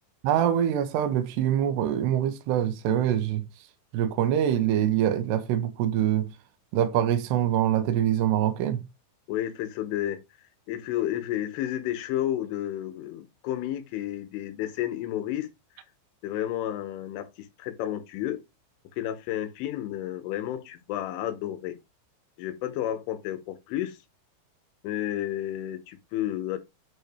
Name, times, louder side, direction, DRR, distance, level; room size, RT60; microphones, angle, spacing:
voice 1, 0.2-3.4 3.9-6.3 6.7-8.8, right 10 dB, 75° right, 2.7 m, -24 dB
voice 2, 9.3-10.2 10.7-15.5 16.2-18.4 19.0-21.8 22.4-24.0 24.8-26.6, left 12 dB, 90° left, 3.6 m, -31 dB
9.1 x 4.7 x 3.3 m
omnidirectional pair, 5.6 m